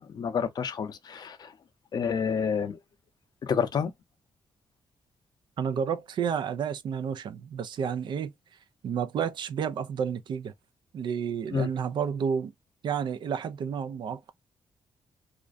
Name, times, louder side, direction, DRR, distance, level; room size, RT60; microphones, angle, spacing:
voice 1, 0.0-1.5 1.9-2.8 3.4-3.9 11.5-11.7, left 6 dB, 55° left, 0.5 m, -29 dB
voice 2, 5.6-8.3 8.8-10.5 10.9-12.5 12.8-14.3, right 7 dB, 65° right, 0.4 m, -30 dB
2.4 x 2.1 x 2.4 m
cardioid pair, 95°, 9 cm